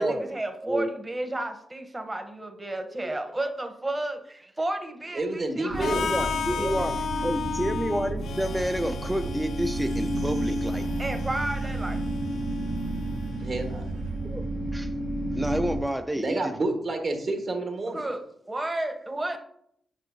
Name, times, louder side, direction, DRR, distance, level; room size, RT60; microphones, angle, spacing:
voice 1, 0.0-6.9 11.0-12.0 17.9-19.4, right 1 dB, 25° right, 5 dB, 1.0 m, -32 dB
voice 2, 5.1-6.1 13.4-13.8 16.1-18.0, right 2 dB, 60° right, 3 dB, 1.5 m, -29 dB
sound 1, 5.7-15.8, right 1 dB, 85° right, 1.0 m, -31 dB
Harmonica, 5.8-13.7, left 6 dB, 75° left, 0.4 m, -35 dB
voice 3, 5.9-6.9 7.2-10.9 14.3-14.9 15.3-16.5, equal, 10° right, 6 dB, 0.4 m, -29 dB
8.3 x 5.2 x 2.7 m, 0.71 s
supercardioid pair, 50°, 0 cm